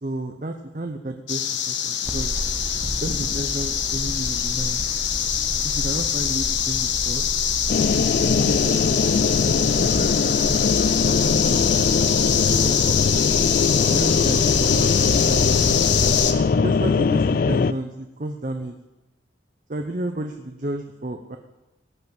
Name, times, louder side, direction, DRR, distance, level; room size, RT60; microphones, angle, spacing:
voice 1, 0.0-2.3 3.0-4.9 5.6-7.2 7.9-10.5 11.0-13.2 13.8-16.0 16.5-18.8 19.7-21.4, right 1 dB, 45° right, 4 dB, 0.8 m, -32 dB
sound 1, 1.3-16.3, left 9 dB, 80° left, 1.0 m, -24 dB
sound 2, 2.1-16.3, right 1 dB, 10° right, 0.5 m, -32 dB
sound 3, 7.7-17.7, left 4 dB, 50° left, 0.3 m, -21 dB
16.5 x 5.7 x 7.9 m, 1.0 s
head